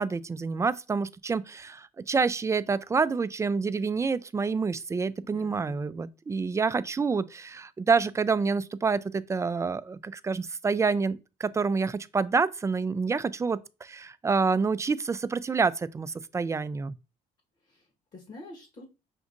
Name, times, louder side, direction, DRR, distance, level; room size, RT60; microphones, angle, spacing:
voice 1, 0.0-16.9, right 4 dB, 20° right, 0.3 m, -28 dB
voice 2, 5.2-5.8 17.6-18.9, left 2 dB, 50° left, 1.4 m, -48 dB
6.0 x 2.5 x 2.6 m
supercardioid pair, 80°, 16 cm